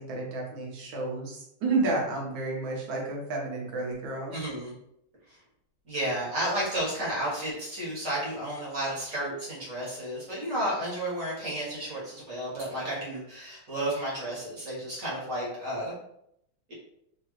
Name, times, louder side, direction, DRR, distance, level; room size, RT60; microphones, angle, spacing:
voice 1, 0.0-4.3, right 3 dB, 70° right, -1 dB, 1.7 m, -31 dB
voice 2, 4.3-4.7 5.3-5.4 5.8-15.9, right 1 dB, 40° right, -6 dB, 1.6 m, -32 dB
3.8 x 2.9 x 3.1 m, 0.76 s
omnidirectional pair, 2.3 m